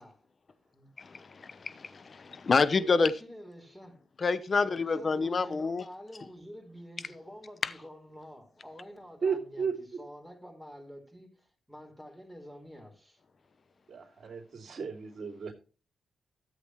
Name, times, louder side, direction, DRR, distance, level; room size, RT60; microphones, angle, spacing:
voice 1, 1.0-3.1 4.2-5.8, left 4 dB, 45° left, 0.9 m, -28 dB
voice 2, 2.8-4.0 4.6-13.2, equal, 5° left, 4.5 m, -48 dB
voice 3, 9.2-9.7 13.9-15.5, right 6 dB, 55° right, 2.9 m, -34 dB
14.0 x 8.0 x 3.2 m
supercardioid pair, 55°, 0 cm